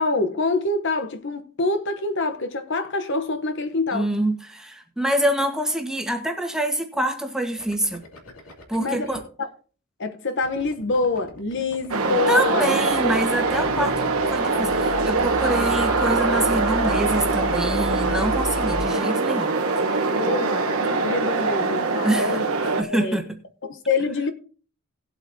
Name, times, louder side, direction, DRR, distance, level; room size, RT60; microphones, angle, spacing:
voice 1, 0.0-4.1 8.8-9.1 9.4-9.5 10.0-13.1 13.7-13.9 19.5-23.2 23.6-24.3, left 3 dB, 55° left, 0.9 m, -26 dB
voice 2, 3.9-8.0 8.7-9.2 12.3-19.5 22.0-22.4 22.8-23.3, right 1 dB, 5° right, 1.4 m, -26 dB
sound 1, 7.6-9.2 10.4-16.1 16.4-18.5, left 2 dB, 75° left, 2.5 m, -44 dB
sound 2, 11.9-22.8, right 3 dB, 75° right, 1.2 m, -23 dB
sound 3, 12.8-18.9, equal, 40° left, 4.1 m, -34 dB
18.0 x 8.1 x 2.8 m
head